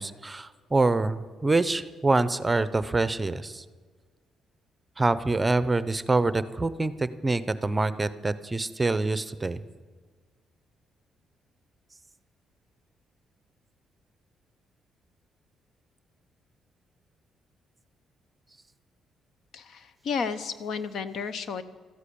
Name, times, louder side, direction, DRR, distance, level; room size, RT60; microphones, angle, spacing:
voice 1, 0.0-3.6 5.0-9.6, right 2 dB, 20° right, 15 dB, 0.7 m, -26 dB
voice 2, 19.5-21.6, left 5 dB, 65° left, 13 dB, 0.9 m, -32 dB
13.5 x 9.8 x 8.6 m, 1.5 s
cardioid pair, 90°, 0 cm